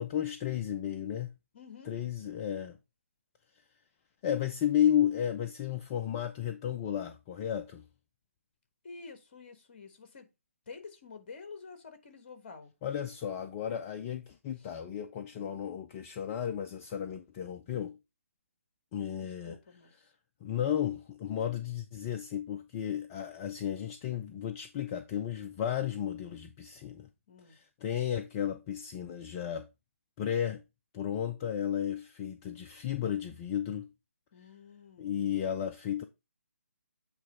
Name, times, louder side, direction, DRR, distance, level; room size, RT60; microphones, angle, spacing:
voice 1, 0.0-1.3 1.8-2.8 4.2-7.8 12.8-18.0 18.9-19.6 20.4-27.1 27.5-29.7 30.2-30.6 30.9-33.9 35.0-36.0, left 10 dB, 20° left, 0.4 m, -33 dB
voice 2, 1.5-2.0 8.8-10.3 10.7-12.7 14.6-14.7 15.3-15.6 19.4-20.1 27.3-27.6 34.3-35.3, left 4 dB, 40° left, 1.4 m, -49 dB
8.1 x 3.1 x 5.2 m
figure-of-eight pair, 145°, 8 cm